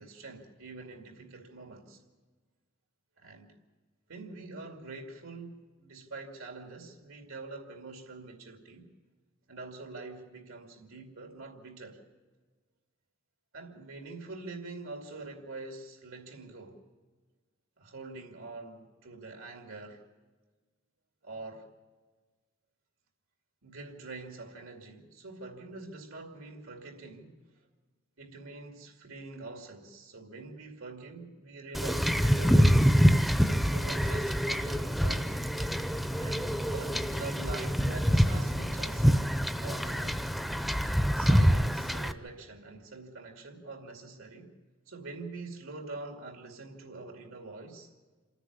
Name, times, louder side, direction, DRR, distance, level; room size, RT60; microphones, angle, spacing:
voice 1, 0.0-2.0 3.2-3.5 4.1-8.9 9.5-12.0 13.5-16.8 17.8-20.0 21.2-21.7 23.6-27.4 28.2-32.9 33.5-35.4 36.2-39.3 39.6-40.2 41.2-44.5 44.9-47.9, right 3 dB, 90° right, 2.4 m, -45 dB
Wind / Ocean / Boat Water vehicle, 31.7-42.1, equal, ahead, 0.6 m, -26 dB
27.5 x 10.0 x 9.6 m
head